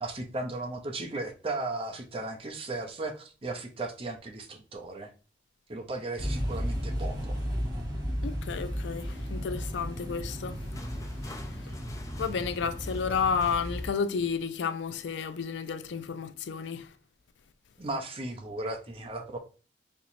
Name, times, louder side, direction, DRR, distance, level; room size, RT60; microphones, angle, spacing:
voice 1, 0.0-5.1 5.7-7.4 17.8-19.4, right 2 dB, 30° right, 0.6 m, -36 dB
sound 1, 6.2-13.9, equal, 70° right, 1.6 m, -34 dB
voice 2, 8.2-10.6 11.4-11.8 12.2-17.0, left 6 dB, 80° left, 0.4 m, -32 dB
sound 2, 10.3-14.4 15.1-15.3, left 2 dB, 20° left, 0.4 m, -50 dB
4.4 x 3.0 x 2.6 m
head